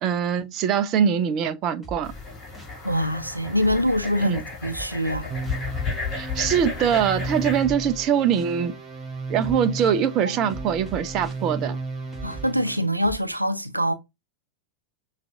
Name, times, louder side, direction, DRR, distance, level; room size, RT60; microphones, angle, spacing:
voice 1, 0.0-2.1 4.2-4.4 6.1-8.7 9.3-11.8, right 8 dB, 35° right, 0.6 m, -23 dB
sound 1, 1.8-2.8 3.6-4.2 4.7-5.7 6.5-7.0 7.6-8.6 9.4-10.0 10.5-11.5 12.1-13.2, right 3 dB, 5° left, 1.8 m, -40 dB
sound 2, 2.0-7.6, left 4 dB, 30° left, 2.8 m, -33 dB
voice 2, 2.8-5.3 12.2-13.9, equal, 85° right, 0.6 m, -24 dB
sound 3, 5.3-12.9, right 3 dB, 20° right, 2.5 m, -34 dB
6.0 x 3.2 x 2.4 m
figure-of-eight pair, 90°, 0 cm